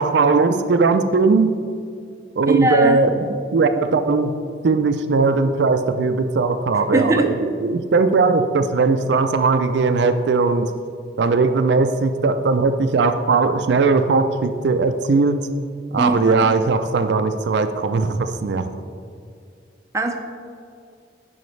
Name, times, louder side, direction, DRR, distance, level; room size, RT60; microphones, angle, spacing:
voice 1, 0.0-1.5 2.4-4.3 4.6-10.7 11.2-15.5 15.9-18.7, right 4 dB, 75° right, 9 dB, 0.4 m, -19 dB
voice 2, 2.5-3.0 6.9-7.2 16.0-16.5 19.9-20.1, right 2 dB, 15° right, 3 dB, 0.5 m, -20 dB
9.1 x 5.7 x 3.2 m, 2.3 s
head